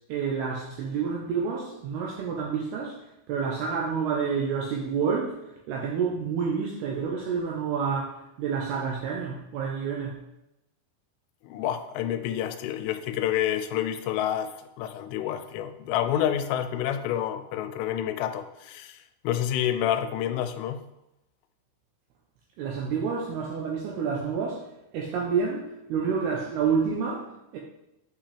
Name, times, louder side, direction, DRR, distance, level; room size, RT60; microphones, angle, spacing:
voice 1, 0.1-5.4 5.7-10.2 22.6-24.7 24.9-27.6, right 6 dB, 90° right, -2 dB, 2.3 m, -29 dB
voice 2, 11.4-20.8, left 10 dB, 85° left, 9 dB, 3.1 m, -29 dB
8.6 x 5.8 x 3.3 m, 0.88 s
omnidirectional pair, 5.6 m